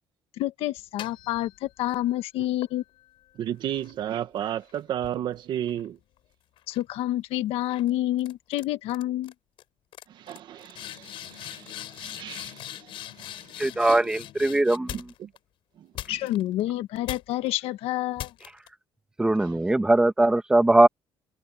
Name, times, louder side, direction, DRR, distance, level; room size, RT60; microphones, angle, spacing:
voice 1, 0.4-2.8 6.7-9.3 16.1-18.3, left 14 dB, 80° left, 1.5 m, -28 dB
sound 1, 0.8-2.0 2.6-6.2 6.6-7.0 7.7-7.9 8.2-8.6 8.9-9.3 9.6-9.7 9.9-15.4 16.0-16.6 17.1-17.5 18.2-18.7, left 13 dB, 60° left, 7.0 m, -42 dB
voice 2, 3.4-6.0 10.1-13.5 13.8-14.1 14.9-15.3 15.8-15.9 19.4-19.6, right 11 dB, 50° right, 1.8 m, -34 dB
voice 3, 13.6-15.0 19.2-20.9, right 2 dB, 10° right, 1.8 m, -20 dB
cardioid pair, 175°, 10 cm